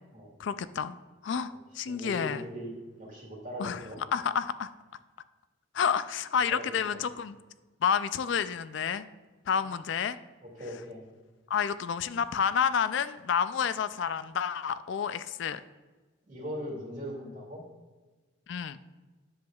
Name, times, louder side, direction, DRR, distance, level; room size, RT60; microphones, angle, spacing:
voice 1, 0.4-1.0 1.2-2.4 3.6-3.8 4.1-4.7 5.7-7.4 7.8-9.0 9.5-10.2 11.5-15.6 18.5-18.8, left 7 dB, 65° left, 13 dB, 0.3 m, -29 dB
voice 2, 1.9-4.0 6.5-7.0 9.6-9.7 10.4-11.0 16.2-17.6, equal, 40° right, -1 dB, 2.2 m, -40 dB
10.5 x 7.2 x 2.3 m, 1.3 s
head